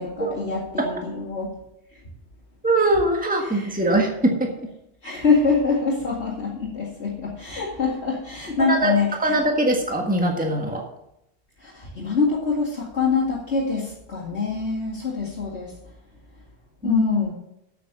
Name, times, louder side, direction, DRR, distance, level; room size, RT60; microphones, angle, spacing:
voice 1, 0.0-1.5 3.5-3.7 5.0-9.4 11.6-15.7 16.8-17.3, left 4 dB, 55° left, -6 dB, 2.4 m, -24 dB
voice 2, 2.6-4.5 8.6-10.8 16.8-17.0, right 1 dB, 5° right, 1 dB, 1.6 m, -22 dB
8.6 x 8.4 x 6.8 m, 0.83 s
omnidirectional pair, 1.3 m